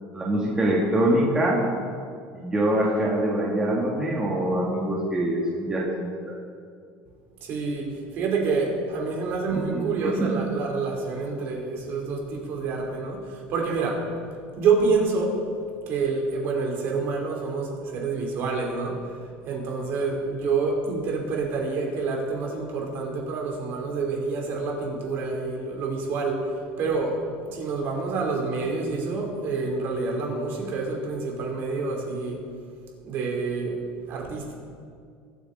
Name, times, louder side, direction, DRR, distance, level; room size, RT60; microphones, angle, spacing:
voice 1, 0.1-1.6 2.3-6.4 9.5-10.4, right 1 dB, 15° right, -4 dB, 1.7 m, -24 dB
voice 2, 7.4-14.0 14.6-15.4 15.9-19.0 19.5-26.5 26.8-32.4 33.0-33.8 34.1-34.5, right 4 dB, 50° right, 0 dB, 2.9 m, -27 dB
23.0 x 8.2 x 3.8 m, 2.2 s
cardioid pair, 150°, 5 cm